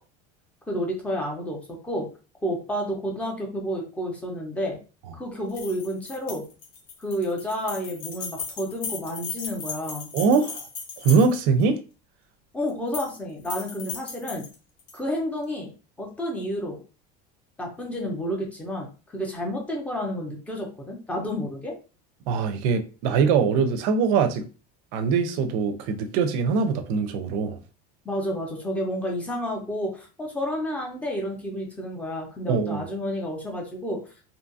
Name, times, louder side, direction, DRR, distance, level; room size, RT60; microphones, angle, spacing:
voice 1, 0.7-2.1 2.4-4.8 5.1-6.4 7.0-10.1 12.5-14.5 14.9-15.7 16.0-16.8 17.6-21.7 28.0-34.0, equal, 5° left, 0.6 m, -30 dB
sound 1, 5.5-11.6 12.7-13.2 13.4-15.0, left 5 dB, 45° left, 0.8 m, -36 dB
voice 2, 10.1-10.6 11.0-11.8 22.3-24.4 24.9-27.6 32.5-32.8, right 5 dB, 55° right, 0.5 m, -22 dB
2.6 x 2.4 x 2.6 m
cardioid pair, 170°, 20 cm